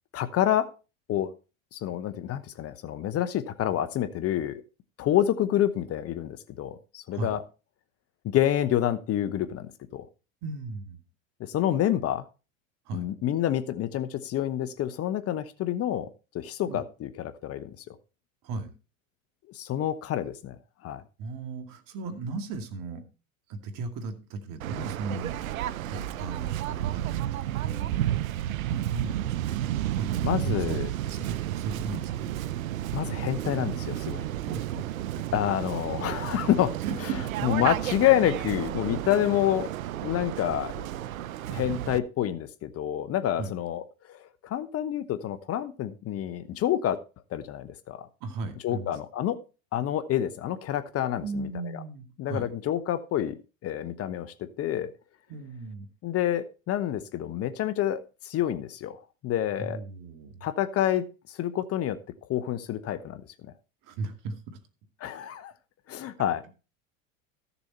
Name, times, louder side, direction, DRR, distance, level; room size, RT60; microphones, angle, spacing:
voice 1, 0.1-0.7 1.1-1.3 1.7-4.6 5.0-7.4 8.2-10.1 11.4-12.2 12.9-16.1 16.3-17.9 19.5-20.6 20.8-21.0 30.2-30.9 32.9-34.3 35.3-36.7 37.4-39.7 40.0-40.9 41.5-47.0 47.3-48.1 48.6-49.4 49.7-51.8 52.2-53.4 53.6-54.9 56.0-59.8 60.4-63.5 65.0-65.5 65.9-66.4, left 11 dB, 35° left, 13 dB, 0.9 m, -28 dB
voice 2, 10.4-11.0 12.9-13.1 16.7-16.8 18.4-18.7 21.2-23.0 23.5-27.0 27.3-28.0 28.3-32.3 34.4-34.8 35.1-35.2 36.8-37.2 43.4-43.5 48.2-48.9 51.2-52.5 55.3-55.9 59.6-60.4 63.8-64.6, right 4 dB, 55° right, 7 dB, 2.5 m, -37 dB
Waves surf, 24.6-42.0, right 13 dB, 90° right, 0.7 m, -32 dB
14.5 x 7.0 x 4.4 m, 0.32 s
hypercardioid pair, 105°, 40 cm